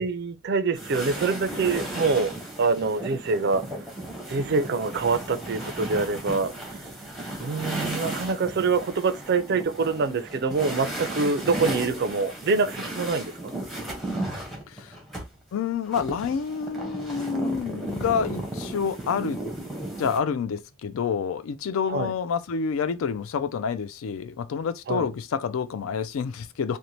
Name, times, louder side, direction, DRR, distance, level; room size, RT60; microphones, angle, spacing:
voice 1, 0.0-3.9 4.3-6.8 7.4-13.5 21.9-22.1 24.9-25.1, right 4 dB, 50° right, 0.4 m, -25 dB
sound 1, 0.8-15.2 15.9-20.2, right 1 dB, ahead, 0.7 m, -35 dB
voice 2, 15.5-19.4 20.0-26.8, left 6 dB, 65° left, 0.3 m, -28 dB
2.6 x 2.1 x 3.0 m
head